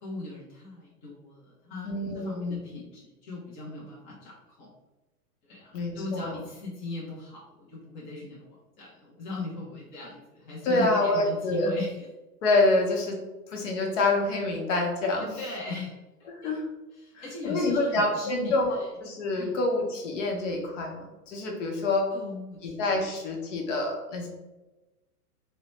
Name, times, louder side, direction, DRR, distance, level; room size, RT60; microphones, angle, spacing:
voice 1, 0.0-4.7 5.4-12.1 15.2-16.5 16.9-18.9 19.4-19.6 22.1-22.8, left 3 dB, 15° left, -6 dB, 0.5 m, -39 dB
voice 2, 1.8-2.6 5.7-6.4 10.6-11.7 12.4-13.2 13.5-15.3 16.4-16.6 17.1-22.1 22.6-24.3, left 2 dB, 50° left, 1 dB, 0.9 m, -27 dB
2.9 x 2.1 x 3.0 m, 1.1 s
figure-of-eight pair, 110°, 46 cm